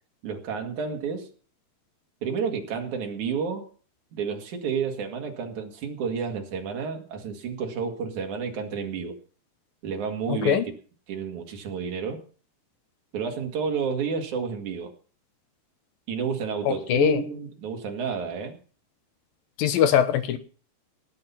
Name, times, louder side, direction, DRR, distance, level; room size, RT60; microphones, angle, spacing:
voice 1, 0.2-1.3 2.2-3.7 4.1-9.2 9.8-10.7 11.1-12.2 13.1-14.9 16.1-18.6, right 6 dB, 50° right, 3 dB, 3.1 m, -30 dB
voice 2, 10.3-10.7 16.7-17.2 19.6-20.4, left 9 dB, 70° left, 10 dB, 2.5 m, -22 dB
18.5 x 9.1 x 5.7 m, 0.41 s
omnidirectional pair, 4.7 m